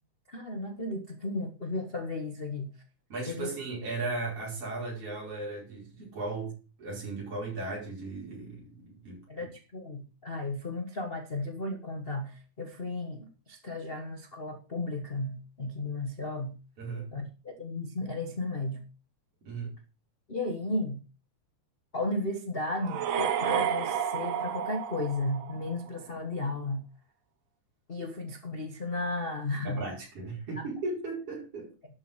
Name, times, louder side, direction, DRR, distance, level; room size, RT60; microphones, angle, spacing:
voice 1, 0.3-2.7 3.3-3.5 9.3-16.6 17.1-18.8 20.3-21.0 21.9-26.8 27.9-29.9 30.6-30.7, left 2 dB, 85° left, 3 dB, 0.5 m, -34 dB
voice 2, 3.1-9.5 16.8-17.1 19.4-19.7 29.6-31.7, right 3 dB, 50° right, -4 dB, 6.3 m, -36 dB
sound 1, 22.8-25.8, right 8 dB, 70° right, 2.1 m, -31 dB
12.0 x 6.4 x 6.3 m, 0.34 s
omnidirectional pair, 3.3 m